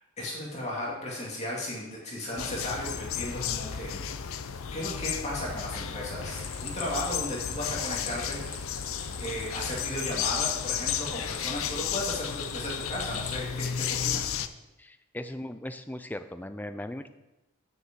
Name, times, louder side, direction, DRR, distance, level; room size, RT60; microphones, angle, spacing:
voice 1, 0.2-4.0 4.7-8.6 9.2-14.3, left 1 dB, 30° left, -4 dB, 2.5 m, -35 dB
sound 1, 2.4-14.5, left 8 dB, 65° left, 0.5 m, -33 dB
Stream, 6.4-13.4, left 6 dB, 90° left, 1.5 m, -43 dB
voice 2, 14.8-17.1, left 1 dB, 5° left, 9 dB, 0.4 m, -38 dB
7.3 x 6.6 x 7.5 m, 0.99 s
head